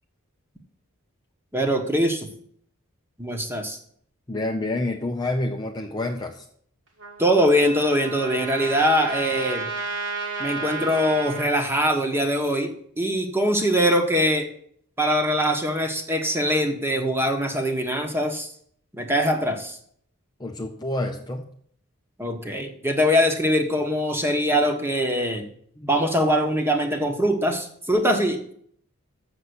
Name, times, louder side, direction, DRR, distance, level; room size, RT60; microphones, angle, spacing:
voice 1, 1.5-2.3 3.2-3.8 7.2-9.7 10.4-14.5 15.0-18.5 18.9-19.8 22.2-25.5 25.9-28.5, equal, 10° right, 4 dB, 1.2 m, -22 dB
voice 2, 4.3-6.5 20.4-21.5 25.8-25.9, left 2 dB, 20° left, 2 dB, 0.6 m, -28 dB
Trumpet, 7.0-11.5, right 4 dB, 55° right, 1.8 m, -32 dB
7.2 x 6.9 x 8.0 m, 0.63 s
head